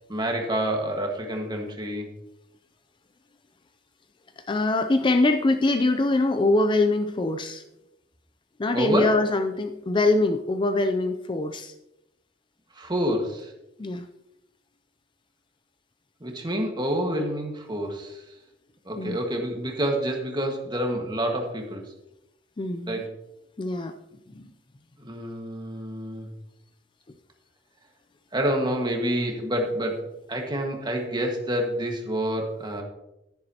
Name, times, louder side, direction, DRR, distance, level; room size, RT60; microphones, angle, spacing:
voice 1, 0.1-2.1 8.7-9.1 12.7-13.5 16.2-18.2 18.8-21.8 22.9-23.1 25.0-26.3 28.3-32.8, right 1 dB, 25° right, 2 dB, 1.6 m, -28 dB
voice 2, 4.4-7.6 8.6-11.7 13.8-14.1 19.0-19.2 22.6-23.1 23.6-23.9 24.3-24.5, left 2 dB, 25° left, 8 dB, 0.4 m, -23 dB
10.5 x 10.5 x 2.9 m, 0.88 s
head